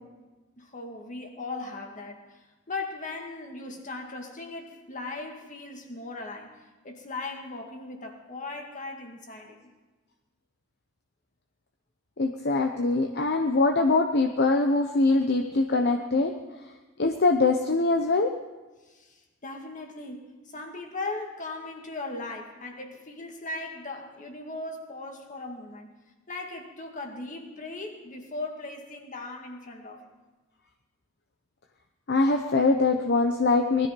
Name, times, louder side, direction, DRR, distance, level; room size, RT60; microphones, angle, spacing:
voice 1, 0.6-6.6 6.8-9.7 18.9-25.9 26.3-30.1, left 3 dB, 40° left, 3 dB, 2.1 m, -38 dB
voice 2, 12.2-16.3 17.0-18.3 32.1-33.9, left 3 dB, 55° left, 4 dB, 0.9 m, -23 dB
20.0 x 13.5 x 5.3 m, 1.2 s
head